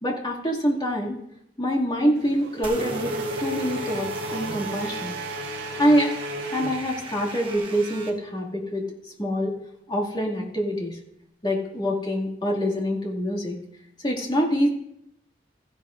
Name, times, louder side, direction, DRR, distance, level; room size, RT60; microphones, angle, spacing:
voice 1, 0.0-1.2 1.6-3.1 3.4-5.2 5.8-6.1 6.5-8.8 9.2-9.5 9.9-11.0 11.4-13.6 14.0-14.7, equal, 25° left, -2 dB, 2.3 m, -25 dB
Race car auto racing / Accelerating revving vroom, 2.2-7.4, right 1 dB, 70° right, 0.8 m, -33 dB
sound 1, 2.6-8.1, right 3 dB, 30° right, 1.5 m, -39 dB
15.0 x 11.0 x 2.6 m, 0.77 s
head